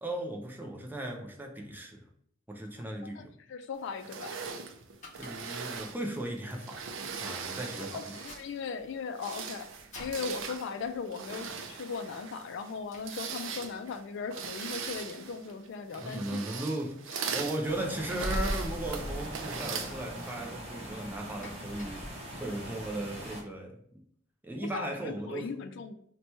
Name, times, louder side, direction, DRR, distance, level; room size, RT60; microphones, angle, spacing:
voice 1, 0.0-2.1 2.5-3.4 5.2-6.9 7.2-8.2 16.0-24.0 24.4-25.7, right 1 dB, 10° right, 1 dB, 0.5 m, -37 dB
voice 2, 3.5-4.3 7.7-9.7 10.0-16.4 24.6-25.9, left 5 dB, 65° left, 8 dB, 0.3 m, -38 dB
sound 1, 4.0-8.6 9.0-20.6, right 5 dB, 70° right, 0.4 m, -40 dB
Domestic sounds home sounds, 4.9-23.4, left 2 dB, 40° left, 0.8 m, -57 dB
sound 2, 17.6-23.4, equal, 30° right, 0.8 m, -38 dB
2.9 x 2.2 x 4.1 m, 0.65 s
head